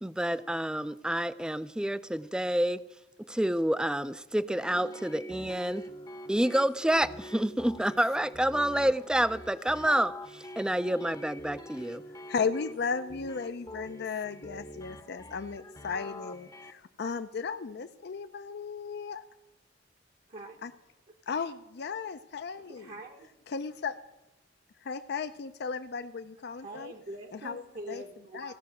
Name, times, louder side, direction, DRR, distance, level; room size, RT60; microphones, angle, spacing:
voice 1, 0.0-2.8 3.3-5.8 6.3-12.0, right 1 dB, 5° right, 15 dB, 0.4 m, -28 dB
sound 1, 4.5-16.7, equal, 20° left, 0.7 m, -45 dB
voice 2, 12.3-19.2 20.6-20.7 21.3-22.9 23.5-24.0 24.8-26.9 27.3-27.6 27.9-28.0 28.3-28.5, left 5 dB, 60° left, 9 dB, 0.5 m, -35 dB
voice 3, 22.6-23.3 26.5-28.5, right 1 dB, 45° right, 5 dB, 0.9 m, -44 dB
15.5 x 5.7 x 7.5 m, 1.0 s
head